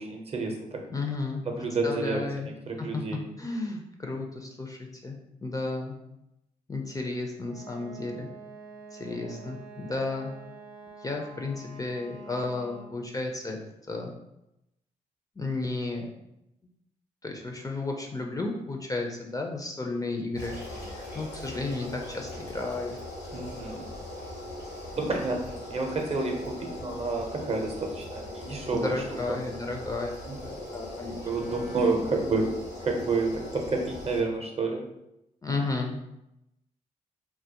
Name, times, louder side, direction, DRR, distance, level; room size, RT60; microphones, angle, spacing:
voice 1, 0.0-0.9 1.5-3.2 9.0-9.4 23.3-23.8 25.0-29.4 30.3-30.4 31.2-34.9, right 3 dB, 35° right, 2 dB, 0.6 m, -30 dB
voice 2, 0.9-1.4 1.8-2.5 2.8-3.0 3.4-6.0 6.7-8.3 8.9-10.3 11.0-13.6 13.9-14.1 15.4-16.1 17.2-23.0 28.7-30.2 30.4-31.2 35.4-36.0, left 3 dB, 20° left, 1 dB, 0.4 m, -33 dB
Wind instrument woodwind instrument, 7.4-13.1, right 3 dB, 80° right, 0.6 m, -47 dB
sound 1, 20.3-34.2, left 1 dB, 70° left, 0.9 m, -40 dB
2.2 x 2.0 x 2.8 m, 0.86 s
hypercardioid pair, 45°, 17 cm